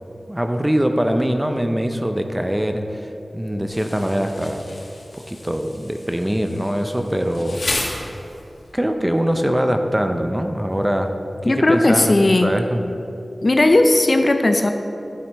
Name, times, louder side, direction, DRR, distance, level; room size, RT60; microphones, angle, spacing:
voice 1, 0.3-4.7 5.1-7.6 8.7-11.1 11.4-12.1 12.4-12.8, equal, 10° right, 6 dB, 0.5 m, -22 dB
Insect, 3.7-8.7, left 2 dB, 65° left, 1.2 m, -33 dB
voice 2, 11.5-12.5 13.4-14.7, left 2 dB, 45° left, 6 dB, 0.5 m, -16 dB
11.0 x 5.0 x 4.2 m, 2.8 s
wide cardioid pair, 85°, 0 cm